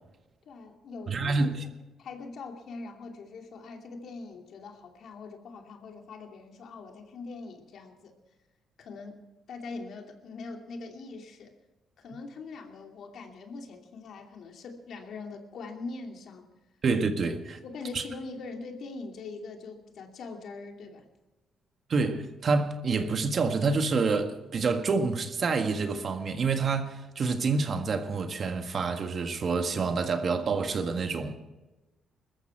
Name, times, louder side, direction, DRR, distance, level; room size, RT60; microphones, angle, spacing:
voice 1, 0.5-1.4 1.6-1.7 2.0-8.1 8.8-9.2 9.5-11.5 12.0-16.5 17.6-21.1, left 3 dB, 65° left, 2.7 m, -42 dB
voice 2, 1.1-1.6 16.8-17.6 17.9-18.0 21.9-31.4, right 4 dB, 50° right, 1.7 m, -27 dB
21.5 x 13.5 x 4.6 m
cardioid pair, 90°, 0 cm